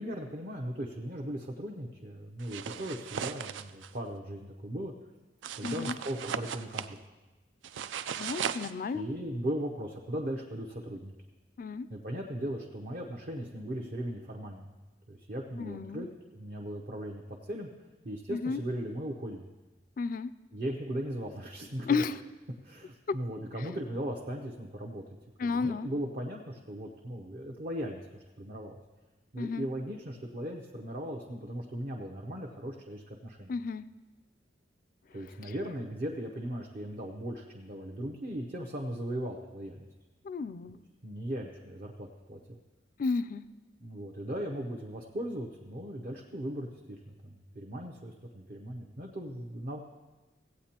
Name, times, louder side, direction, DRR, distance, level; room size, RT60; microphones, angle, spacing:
voice 1, 0.0-4.9 5.6-7.0 8.9-11.1 11.9-14.8 15.1-16.1 16.3-17.7 18.0-19.5 20.5-22.0 22.6-25.0 25.4-28.8 29.3-33.5 35.1-39.9 41.0-42.6 43.8-49.8, right 1 dB, 45° right, 0 dB, 0.7 m, -38 dB
sound 1, 2.4-3.9 5.4-6.9 7.6-8.7, right 8 dB, 75° right, 0.4 m, -37 dB
voice 2, 5.6-6.0 8.2-9.0 11.6-11.9 15.6-16.0 18.3-18.6 20.0-20.3 21.9-22.2 25.4-25.9 29.4-29.7 33.5-33.8 35.4-35.5 40.2-40.8 43.0-43.4, left 4 dB, 45° left, 15 dB, 0.3 m, -32 dB
16.5 x 8.6 x 2.9 m, 1.2 s
head